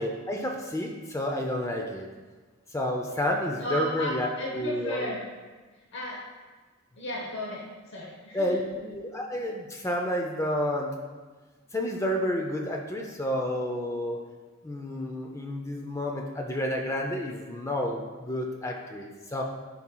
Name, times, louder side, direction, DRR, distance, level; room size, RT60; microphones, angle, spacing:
voice 1, 0.0-2.1 2.7-4.3 4.5-5.1 8.3-11.0 11.7-14.2 14.6-19.4, left 1 dB, 15° left, 1 dB, 0.4 m, -30 dB
voice 2, 3.6-5.2 5.9-6.2 7.0-8.6, equal, 60° left, -4 dB, 0.9 m, -34 dB
10.5 x 4.2 x 2.2 m, 1.4 s
head